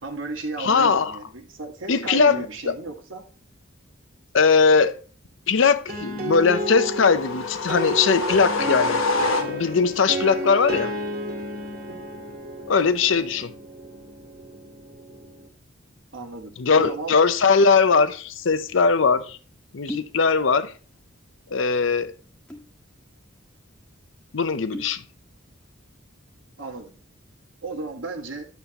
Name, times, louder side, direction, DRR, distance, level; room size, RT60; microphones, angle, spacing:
voice 1, 0.0-3.2 11.9-12.4 16.1-17.2 26.6-26.9 27.6-28.5, right 3 dB, 70° right, 1.3 m, -34 dB
voice 2, 0.6-1.2 1.9-2.7 4.3-5.0 5.5-9.0 9.4-10.9 12.7-13.5 16.6-19.4 19.7-20.7 21.5-22.1 24.3-25.0, left 5 dB, 65° left, 0.6 m, -20 dB
sound 1, 5.9-15.5, equal, 50° right, 2.0 m, -32 dB
sound 2, 6.7-9.9, left 3 dB, 85° left, 1.1 m, -27 dB
sound 3, 19.7-20.2 20.5-21.1 21.4-21.6 22.3-22.8 23.2-23.3 23.6-23.8 24.5-25.0 25.5-25.8, left 1 dB, 5° left, 1.4 m, -38 dB
9.2 x 6.9 x 2.8 m
head